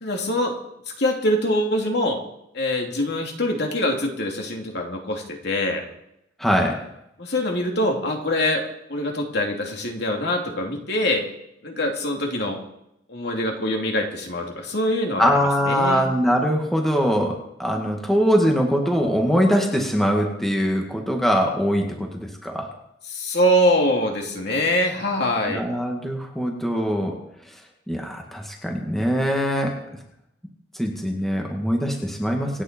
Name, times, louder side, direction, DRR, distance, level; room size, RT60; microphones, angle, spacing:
voice 1, 0.0-0.5 1.0-2.2 2.5-5.9 7.2-8.6 8.9-11.3 11.6-12.6 13.1-15.3 15.6-16.0 23.1-25.6, left 1 dB, 60° left, 2 dB, 2.9 m, -24 dB
voice 2, 6.4-6.8 15.2-22.7 25.5-27.2 27.9-29.8 30.7-32.6, equal, ahead, 0 dB, 2.0 m, -22 dB
26.0 x 9.8 x 4.5 m, 0.81 s
head